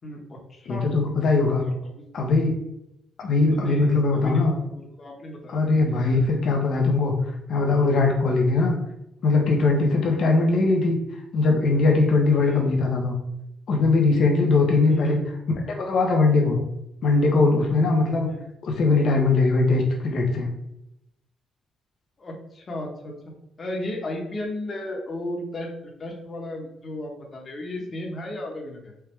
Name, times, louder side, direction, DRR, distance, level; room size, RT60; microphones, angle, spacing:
voice 1, 0.0-0.9 1.6-2.0 3.5-5.6 5.9-6.4 12.4-12.6 14.9-15.3 18.3-18.4 22.2-23.1 23.6-28.9, left 1 dB, 40° left, 0 dB, 1.2 m, -34 dB
voice 2, 0.7-1.6 2.1-2.6 3.2-4.5 5.5-7.1 7.5-8.7 9.2-11.0 11.3-13.1 13.7-15.2 15.7-16.6 17.0-18.3 18.6-20.5, left 3 dB, 60° left, 0 dB, 0.9 m, -20 dB
4.6 x 2.2 x 3.4 m, 0.85 s
cardioid pair, 90°, 0 cm